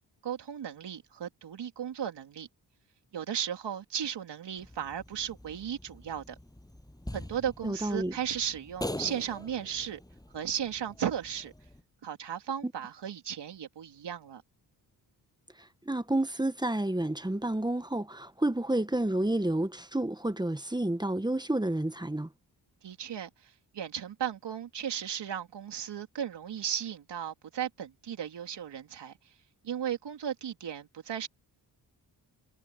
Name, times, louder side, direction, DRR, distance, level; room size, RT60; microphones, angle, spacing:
voice 1, 0.2-2.5 3.1-6.3 7.1-10.0 10.3-11.5 12.0-14.4 22.8-29.1 29.6-31.3, right 9 dB, 85° right, 3.0 m, -35 dB
sound 1, 4.6-11.8, left 1 dB, 10° left, 7.1 m, -44 dB
voice 2, 7.6-8.1 12.6-12.7 15.9-22.3, right 1 dB, 10° right, 1.2 m, -30 dB
cardioid pair, 70°, 41 cm